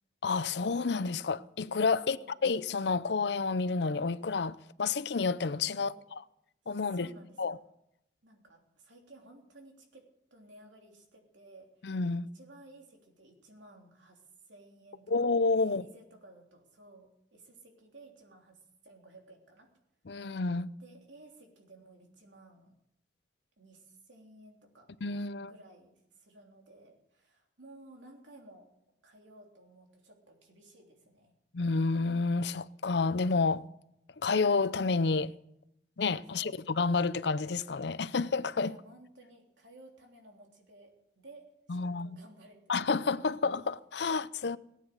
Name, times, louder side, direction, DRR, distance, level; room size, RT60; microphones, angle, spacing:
voice 1, 0.2-5.9 6.7-7.1 7.4-7.6 11.8-12.3 15.1-15.9 20.1-20.7 25.0-25.5 31.5-33.7 34.2-35.3 36.0-38.7 41.7-42.2 42.7-44.6, left 4 dB, 65° left, 0.6 m, -30 dB
voice 2, 2.0-2.4 5.7-6.0 6.9-7.7 8.2-10.0 10.3-12.0 12.3-15.2 15.6-19.7 20.8-22.7 23.6-24.9 25.4-28.7 29.0-31.3 36.3-36.5 38.6-40.9 41.2-43.4, right 2 dB, 85° right, 3.3 m, -56 dB
18.0 x 9.3 x 7.9 m
head